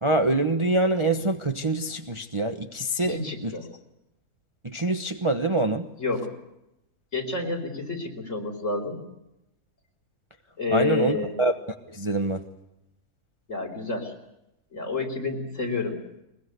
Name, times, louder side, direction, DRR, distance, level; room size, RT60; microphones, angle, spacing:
voice 1, 0.0-3.5 4.6-5.9 10.7-11.5 11.9-12.4, right 2 dB, 20° right, 6 dB, 1.0 m, -25 dB
voice 2, 3.0-3.7 6.0-6.3 7.1-9.0 10.6-11.3 13.5-14.1 14.7-16.0, left 4 dB, 50° left, 3 dB, 4.7 m, -29 dB
22.0 x 22.0 x 8.2 m, 0.88 s
omnidirectional pair, 1.6 m